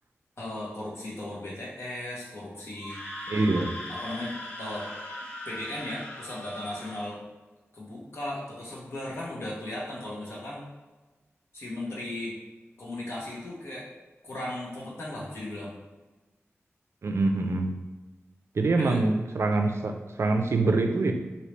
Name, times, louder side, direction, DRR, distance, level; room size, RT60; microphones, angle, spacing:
voice 1, 0.4-3.0 3.9-4.9 5.4-7.2 7.7-10.6 11.5-12.4 12.8-13.9 14.2-15.7 18.8-19.0, left 1 dB, 60° left, -6 dB, 1.1 m, -36 dB
Screaming, 2.7-7.1, left 1 dB, 35° left, 0.9 m, -39 dB
voice 2, 3.3-3.7 17.0-17.7 18.5-21.1, right 3 dB, 65° right, 5 dB, 0.4 m, -25 dB
3.2 x 2.7 x 3.1 m, 1.2 s
wide cardioid pair, 90°, 5 cm